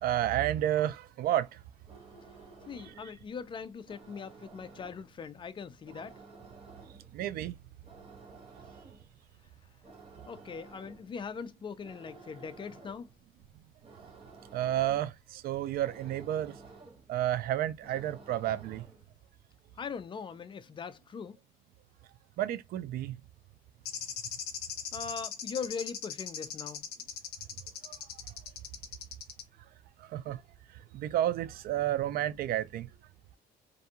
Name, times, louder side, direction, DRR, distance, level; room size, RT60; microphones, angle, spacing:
voice 1, 0.0-1.6 2.9-3.0 7.1-7.6 14.5-16.6 17.1-18.9 22.4-23.1 27.8-27.9 30.0-30.4 30.9-32.9, right 12 dB, 65° right, 0.4 m, -31 dB
sound 1, 1.8-19.2, right 3 dB, 35° right, 1.0 m, -54 dB
voice 2, 2.7-6.2 10.3-13.1 19.8-21.4 24.9-26.9, left 6 dB, 30° left, 0.4 m, -41 dB
sound 2, 23.9-29.4, left 8 dB, 70° left, 0.7 m, -39 dB
2.5 x 2.2 x 2.8 m
cardioid pair, 110°, 17 cm